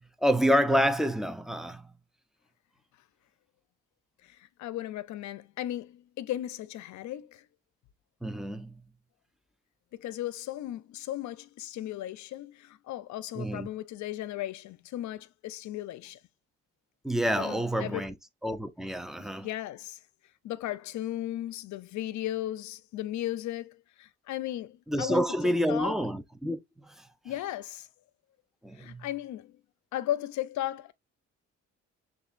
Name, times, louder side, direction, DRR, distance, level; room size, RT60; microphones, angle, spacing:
voice 1, 0.0-1.9 8.2-8.8 13.4-13.7 17.0-18.1 18.4-19.5 24.9-27.1 28.6-29.1, equal, ahead, 0.5 m, -28 dB
voice 2, 4.2-7.5 9.9-16.2 17.4-18.1 19.4-20.0 20.4-26.0 27.2-27.9 28.8-29.6 29.9-30.9, left 13 dB, 70° left, 0.5 m, -36 dB
6.4 x 2.5 x 2.5 m
cardioid pair, 90°, 30 cm